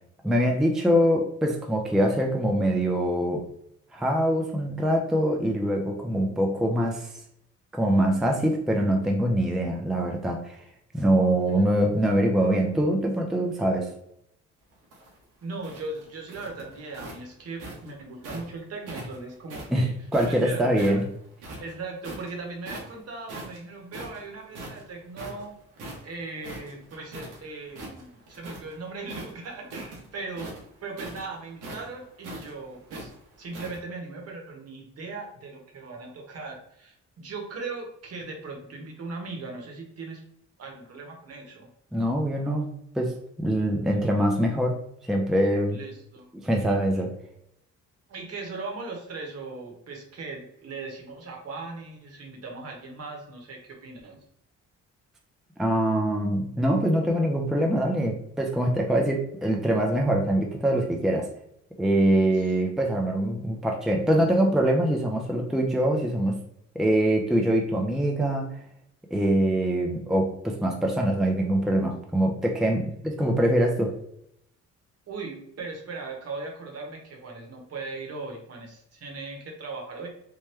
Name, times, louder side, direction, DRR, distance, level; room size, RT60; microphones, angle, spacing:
voice 1, 0.2-3.4 3.9-7.1 7.7-10.6 10.9-13.9 19.7-21.0 41.9-44.8 45.0-45.8 46.3-47.1 55.6-61.3 61.8-66.4 66.8-68.5 69.1-73.9, right 1 dB, ahead, 1 dB, 0.4 m, -24 dB
voice 2, 11.2-11.7 15.4-19.9 20.2-21.0 21.6-25.5 26.0-30.5 30.8-33.1 33.4-40.2 40.6-41.7 45.7-46.3 48.1-54.2 62.3-62.5 75.1-80.1, right 3 dB, 55° right, 1 dB, 1.0 m, -38 dB
sound 1, 14.7-18.5 18.9-21.0 21.4-22.3 22.6-23.0 23.3-27.4 27.7-28.7 29.0-33.8, right 1 dB, 90° right, 1.0 m, -41 dB
3.0 x 2.2 x 3.2 m, 0.73 s
cardioid pair, 90°, 30 cm